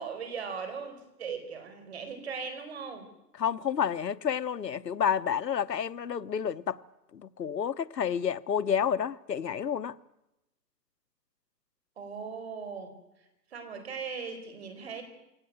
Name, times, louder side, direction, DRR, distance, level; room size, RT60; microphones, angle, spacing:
voice 1, 0.0-3.1 12.0-13.0 13.5-15.0, right 5 dB, 40° right, 4.5 m, -38 dB
voice 2, 3.4-6.8 7.1-10.0, left 8 dB, 75° left, 1.0 m, -30 dB
23.0 x 18.0 x 9.2 m
hypercardioid pair, 170°, 50 cm